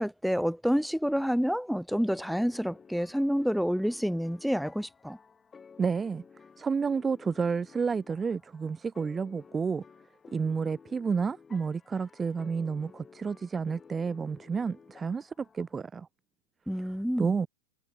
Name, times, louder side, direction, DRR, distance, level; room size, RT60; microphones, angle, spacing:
voice 1, 0.0-5.2 16.7-17.3, equal, ahead, 0.9 m, -28 dB
sound 1, 2.1-15.8, left 5 dB, 15° left, 7.3 m, -54 dB
voice 2, 5.8-6.2 6.6-9.8 10.3-16.1 17.2-17.5, right 5 dB, 15° right, 0.3 m, -30 dB
figure-of-eight pair, 90°, 0 cm